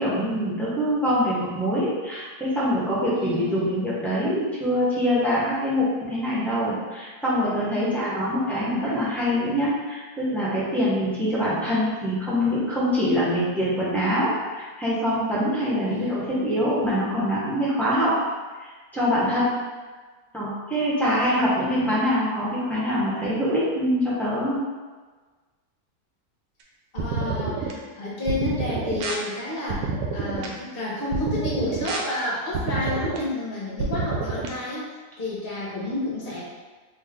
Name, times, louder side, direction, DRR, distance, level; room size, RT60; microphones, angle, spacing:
voice 1, 0.0-18.1 18.6-19.5 20.3-24.6, equal, ahead, -9 dB, 0.7 m, -24 dB
voice 2, 3.1-3.6 7.8-8.0 13.0-13.2 15.8-16.4 21.6-21.9 26.9-34.9 35.2-36.4, left 2 dB, 45° left, -6 dB, 0.9 m, -30 dB
sound 1, 27.0-27.7 28.3-29.1 29.7-30.5 31.1-32.0 32.5-33.2 33.8-34.5, right 4 dB, 85° right, 1.2 m, -28 dB
3.1 x 2.8 x 3.6 m, 1.4 s
omnidirectional pair, 1.7 m